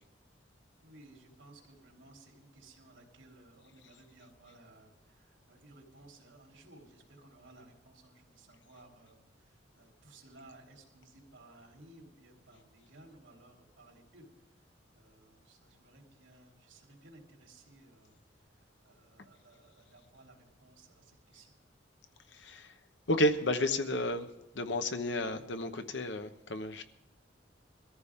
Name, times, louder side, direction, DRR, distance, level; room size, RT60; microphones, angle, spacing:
voice 1, 0.8-14.3 14.9-21.6, right 2 dB, 90° right, 1 dB, 3.4 m, -58 dB
voice 2, 22.3-22.7 23.1-24.3 24.5-26.8, left 1 dB, 70° left, 8 dB, 1.0 m, -31 dB
22.5 x 14.0 x 3.7 m, 0.91 s
head